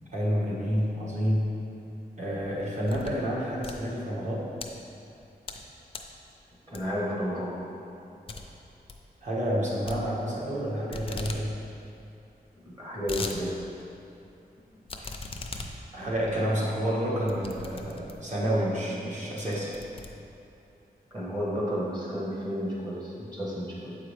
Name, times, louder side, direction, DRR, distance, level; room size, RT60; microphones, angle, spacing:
voice 1, 0.1-1.6 2.2-4.5 9.2-11.5 15.9-19.8, equal, 45° right, -6 dB, 1.3 m, -29 dB
sound 1, 2.4-3.2 3.5-4.7 5.2-5.6 5.9-6.2 6.7-7.1 7.5-7.6 7.9-8.0 8.3-8.4 8.7-9.0 9.9-10.6 10.9-11.4 11.8-11.9 12.0-12.1 12.7-13.4 13.8-13.9 14.9-18.4 18.9-19.1 19.4-20.6, left 3 dB, 35° left, 0.4 m, -39 dB
voice 2, 6.7-7.6 12.6-13.6 15.0-15.1 21.1-24.0, equal, 25° right, -5 dB, 1.1 m, -32 dB
7.4 x 4.7 x 3.3 m, 2.8 s
wide cardioid pair, 170°, 16 cm